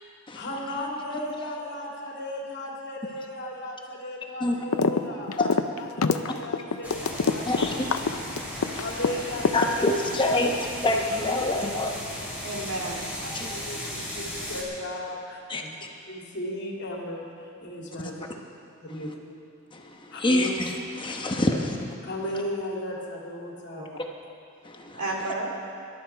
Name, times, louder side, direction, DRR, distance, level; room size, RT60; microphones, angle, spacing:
voice 1, 0.3-5.3 5.8-9.8 13.2-15.6 16.1-18.3 18.8-19.1 20.1-20.5 22.0-23.9, left 1 dB, 55° left, -2 dB, 2.5 m, -36 dB
sound 1, 4.7-5.0 5.3-9.1 9.4-10.3, left 4 dB, 75° left, 0.6 m, -24 dB
sound 2, 6.8-14.6, equal, 5° right, 3.2 m, -36 dB
voice 2, 7.5-7.9 9.5-12.4 13.3-13.5 15.5-15.6 19.7-20.7 21.0-21.8 24.6-25.0, left 2 dB, 25° left, 1 dB, 1.0 m, -26 dB
voice 3, 12.4-13.1 15.6-15.7 18.8-19.1 21.3-21.6 23.7-24.0 25.0-25.5, right 2 dB, 75° right, -1 dB, 2.7 m, -33 dB
21.0 x 12.0 x 4.5 m, 2.5 s
head